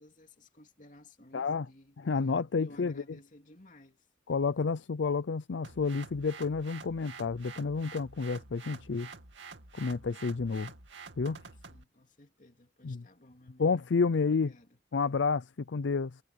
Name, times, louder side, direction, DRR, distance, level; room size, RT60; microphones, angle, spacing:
voice 1, 0.0-4.1 11.7-13.8 14.1-14.8, left 1 dB, 45° left, 2.8 m, -56 dB
voice 2, 1.3-1.6 2.0-2.9 4.3-9.1 9.8-10.7 11.2-11.4 12.8-13.0 13.6-14.5 14.9-16.2, left 4 dB, 80° left, 0.5 m, -30 dB
sound 1, 5.6-11.8, right 5 dB, 90° right, 2.6 m, -49 dB
head